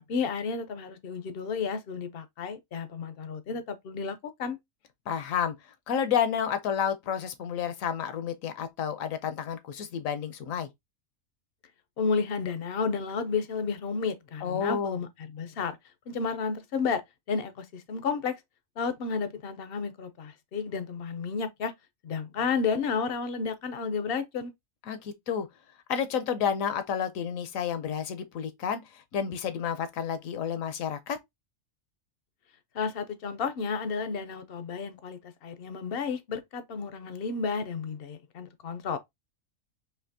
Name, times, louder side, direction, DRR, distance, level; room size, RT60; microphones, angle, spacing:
voice 1, 0.0-4.6 12.0-15.8 16.1-18.4 18.8-21.7 22.0-24.5 32.7-39.0, left 5 dB, 60° left, 0.6 m, -32 dB
voice 2, 5.1-5.6 5.9-10.7 14.4-15.0 24.9-25.5 25.9-31.2, left 8 dB, 75° left, 1.1 m, -30 dB
4.2 x 2.7 x 2.6 m
omnidirectional pair, 1.4 m